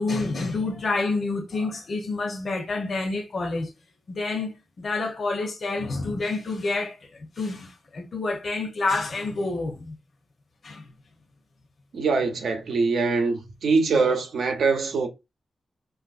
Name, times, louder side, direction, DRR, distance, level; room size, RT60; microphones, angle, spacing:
voice 1, 0.0-3.7 4.1-4.5 4.8-10.0 10.6-10.8, left 3 dB, 45° left, 0.7 m, -28 dB
voice 2, 11.9-15.1, right 4 dB, 80° right, 0.7 m, -23 dB
3.4 x 2.5 x 2.4 m
wide cardioid pair, 115°, 0 cm